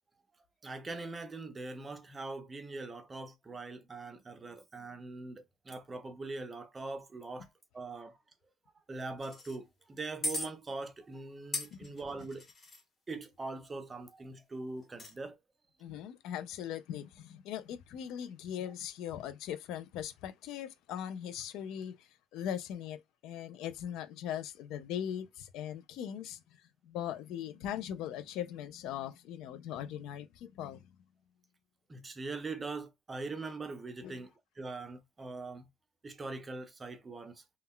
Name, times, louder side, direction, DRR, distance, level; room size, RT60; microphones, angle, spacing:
voice 1, 0.6-8.2 8.9-12.5 13.1-15.4 31.9-35.7 36.0-37.4, right 3 dB, 20° right, 0.5 m, -42 dB
sound 1, 9.2-9.6 10.2-10.5 11.5-12.8 14.8-15.1, left 1 dB, 35° left, 1.0 m, -38 dB
voice 2, 15.8-26.4 26.8-30.8 34.0-34.2, left 10 dB, 75° left, 0.3 m, -40 dB
2.2 x 2.1 x 3.6 m
cardioid pair, 130°, 0 cm